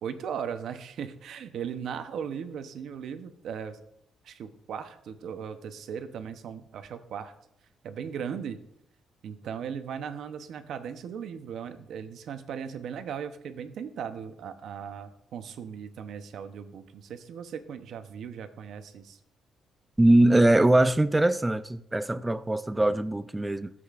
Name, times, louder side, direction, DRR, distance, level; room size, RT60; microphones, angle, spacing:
voice 1, 0.0-3.8 4.2-7.3 7.8-8.6 9.2-19.2, right 7 dB, 70° right, 0.8 m, -37 dB
voice 2, 20.0-23.7, right 1 dB, 15° right, 0.5 m, -22 dB
13.5 x 7.7 x 2.5 m
cardioid pair, 90°, 0 cm